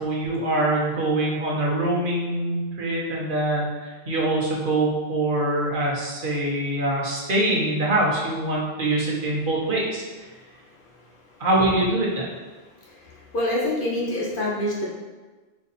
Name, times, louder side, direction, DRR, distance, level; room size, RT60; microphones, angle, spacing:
voice 1, 0.0-10.0 11.4-12.3, right 1 dB, 60° right, -4 dB, 1.0 m, -24 dB
voice 2, 12.8-14.8, left 1 dB, 60° left, -5 dB, 1.1 m, -26 dB
4.3 x 2.7 x 4.0 m, 1.3 s
omnidirectional pair, 1.0 m